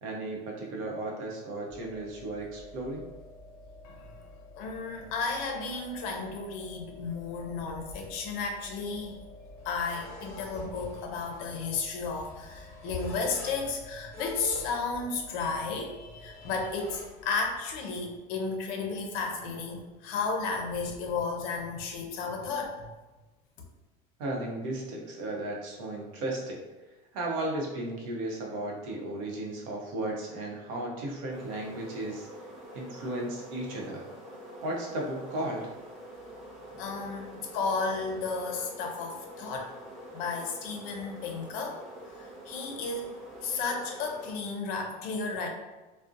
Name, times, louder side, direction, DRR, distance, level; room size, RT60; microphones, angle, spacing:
voice 1, 0.0-3.0 24.2-26.6 27.1-32.3 32.7-34.0 34.6-35.7, right 1 dB, 85° right, -1 dB, 0.7 m, -35 dB
sound 1, 1.7-17.5, left 1 dB, 10° left, 0.9 m, -46 dB
voice 2, 3.8-4.2 4.6-9.2 9.6-22.8 36.8-37.3 37.5-39.7 40.1-41.8 42.1-43.1 43.4-45.5, left 4 dB, 55° left, 2 dB, 0.5 m, -33 dB
sound 2, 31.3-44.3, equal, 40° right, 0.9 m, -46 dB
2.5 x 2.0 x 2.5 m, 1.2 s
cardioid pair, 170°, 17 cm